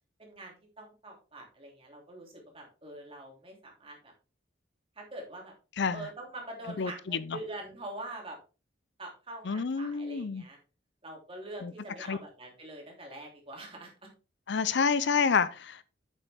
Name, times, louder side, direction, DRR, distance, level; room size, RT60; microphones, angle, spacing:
voice 1, 0.2-4.1 5.0-5.5 5.9-8.4 9.0-10.6 11.0-13.9, right 2 dB, 30° right, 3.1 m, -44 dB
voice 2, 6.8-7.2 9.5-10.4 11.6-11.7 12.1-12.2 14.5-15.8, left 5 dB, 65° left, 0.5 m, -28 dB
8.6 x 6.9 x 3.5 m
head